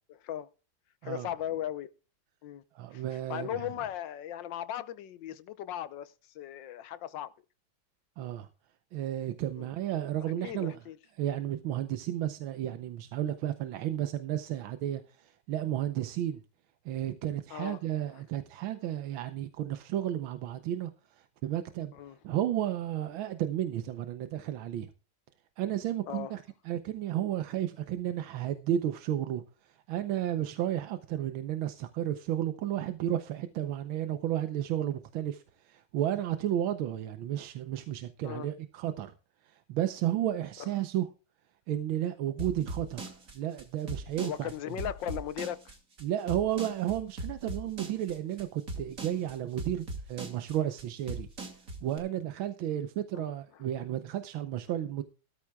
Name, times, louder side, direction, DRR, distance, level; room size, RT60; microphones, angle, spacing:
voice 1, 1.0-1.9 2.4-2.6 2.9-3.0 3.3-7.3 9.6-9.7 10.4-11.0 17.5-17.8 21.9-22.2 26.1-26.3 38.2-38.5 40.6-40.7 44.2-45.7 53.1-53.3, left 11 dB, 70° left, 1.5 m, -37 dB
voice 2, 2.7-3.7 8.2-8.5 8.9-10.8 11.1-16.4 16.8-21.9 22.2-24.9 25.6-39.1 39.4-41.1 41.7-44.5 46.0-51.3 51.8-55.0, right 11 dB, 90° right, 1.6 m, -33 dB
sound 1, 42.4-52.0, right 2 dB, 45° right, 2.9 m, -39 dB
16.5 x 13.0 x 2.3 m
omnidirectional pair, 2.1 m